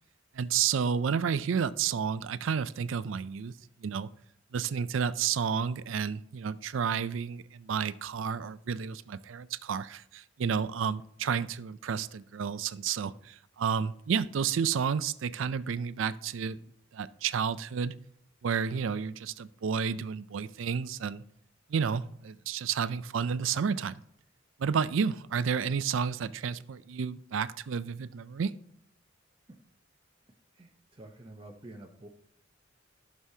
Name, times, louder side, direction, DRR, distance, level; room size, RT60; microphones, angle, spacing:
voice 1, 0.3-3.5 3.8-4.1 4.5-16.6 16.9-17.9 18.4-21.2 21.7-24.0 24.6-28.5, right 6 dB, 75° right, 16 dB, 0.4 m, -31 dB
voice 2, 30.6-32.1, right 1 dB, 25° right, 1 dB, 0.7 m, -49 dB
14.0 x 6.3 x 2.8 m, 0.69 s
head